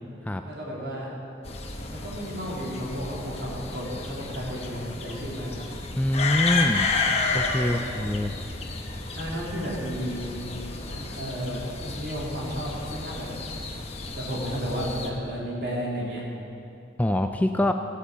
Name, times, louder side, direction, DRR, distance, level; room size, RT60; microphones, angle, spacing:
voice 1, 0.4-1.1 1.9-5.6 7.7-8.1 9.2-10.4 10.9-13.3 14.1-16.2, equal, 65° right, -5 dB, 3.4 m, -33 dB
sound 1, 1.4-15.1, left 3 dB, 35° left, 1.0 m, -31 dB
voice 2, 6.0-6.9 7.3-8.3 17.0-17.7, left 1 dB, 10° left, 6 dB, 0.3 m, -24 dB
15.0 x 8.6 x 6.8 m, 2.7 s
head